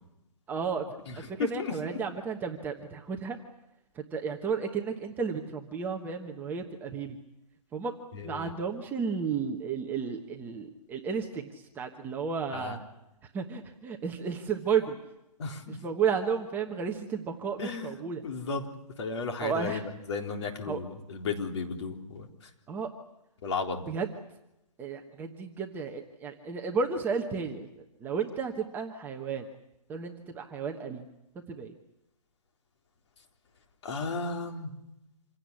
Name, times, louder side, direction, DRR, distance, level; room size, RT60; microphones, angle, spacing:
voice 1, 0.5-0.9 1.1-3.4 3.9-7.2 7.7-7.9 8.2-12.8 13.3-15.0 15.7-18.2 19.4-19.9 20.7-20.8 22.7-22.9 23.9-24.1 24.8-27.7 28.0-29.4 29.9-31.1 31.5-31.7, right 6 dB, 10° right, 2 dB, 1.1 m, -33 dB
voice 2, 1.1-2.0 8.1-8.5 12.5-12.8 15.4-15.8 17.6-18.7 19.0-22.3 23.4-23.9 33.8-34.7, left 4 dB, 45° left, 3 dB, 3.9 m, -34 dB
27.0 x 17.0 x 9.8 m, 0.90 s
hypercardioid pair, 160°, 20 cm